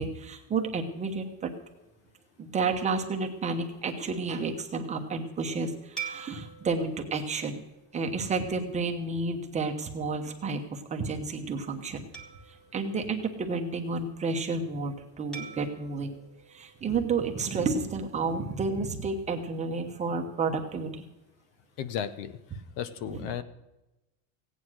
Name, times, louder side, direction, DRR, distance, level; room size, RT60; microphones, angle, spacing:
voice 1, 0.0-1.5 2.4-7.6 7.9-12.1 12.5-16.1 16.5-21.0 23.1-23.2, right 4 dB, 15° right, 3 dB, 1.0 m, -31 dB
sound 1, 6.0-8.6 9.2-9.4 12.1-13.9 15.3-17.6, right 7 dB, ahead, 1.6 m, -45 dB
voice 2, 21.8-23.4, left 9 dB, 55° left, 14 dB, 1.1 m, -35 dB
16.5 x 9.5 x 6.2 m, 0.99 s
cardioid pair, 170°, 43 cm